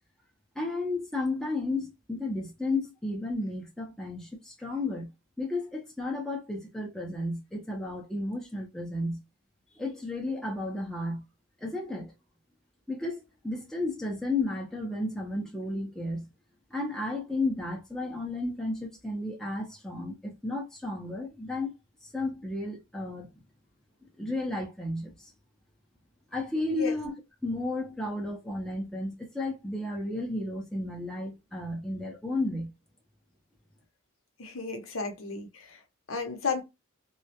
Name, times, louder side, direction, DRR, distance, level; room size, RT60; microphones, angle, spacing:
voice 1, 0.6-5.1 5.4-9.2 9.7-11.2 11.6-12.1 12.9-16.3 16.7-21.7 22.1-23.3 24.2-25.3 26.3-27.1 27.4-32.7, left 2 dB, ahead, 0.5 m, -33 dB
voice 2, 34.4-35.8 36.1-36.6, left 4 dB, 70° left, 0.7 m, -33 dB
2.3 x 2.1 x 2.7 m
head